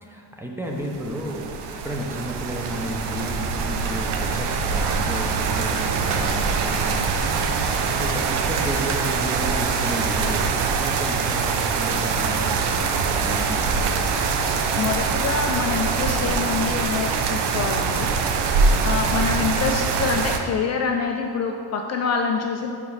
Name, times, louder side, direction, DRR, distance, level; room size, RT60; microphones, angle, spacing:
voice 1, 0.0-7.4 7.9-14.2 18.7-19.0, equal, 5° right, -1 dB, 0.6 m, -32 dB
sound 1, 0.9-20.4, right 5 dB, 70° right, 0.7 m, -23 dB
voice 2, 14.8-18.1 18.8-22.7, left 5 dB, 40° left, 2 dB, 0.4 m, -26 dB
5.0 x 5.0 x 5.4 m, 2.4 s
cardioid pair, 135°, 43 cm